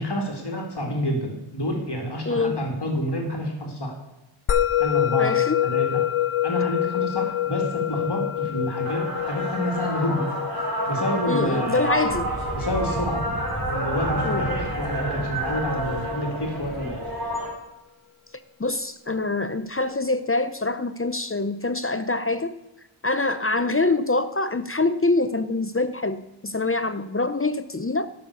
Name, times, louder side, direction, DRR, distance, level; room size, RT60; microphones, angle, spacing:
voice 1, 0.0-4.0 4.8-6.0 6.4-10.3 10.9-11.9 12.5-13.3 13.6-17.0, equal, 55° left, 2 dB, 2.6 m, -28 dB
voice 2, 2.3-2.6 5.2-5.6 11.3-12.3 14.2-14.7 18.6-22.5 23.0-28.1, left 3 dB, 25° left, 12 dB, 0.6 m, -25 dB
Musical instrument, 4.5-15.1, left 12 dB, 80° left, 0.7 m, -27 dB
sound 1, 8.8-17.5, right 1 dB, 45° right, 3.4 m, -29 dB
13.0 x 6.4 x 6.9 m, 0.97 s
wide cardioid pair, 70°, 49 cm